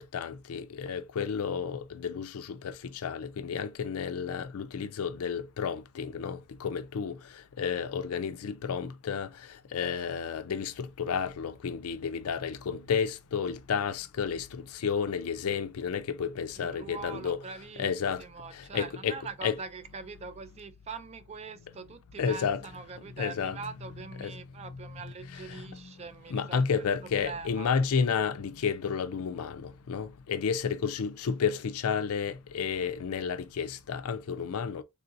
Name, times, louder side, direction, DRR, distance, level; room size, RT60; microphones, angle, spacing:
voice 1, 0.0-17.4 17.8-18.2 18.5-19.5 22.1-22.6 23.0-23.6 24.2-24.4 25.3-25.9 26.3-34.8, left 6 dB, 70° left, 0.4 m, -32 dB
voice 2, 16.6-17.9 18.2-27.7, right 4 dB, 30° right, 0.3 m, -43 dB
3.5 x 2.6 x 2.5 m
head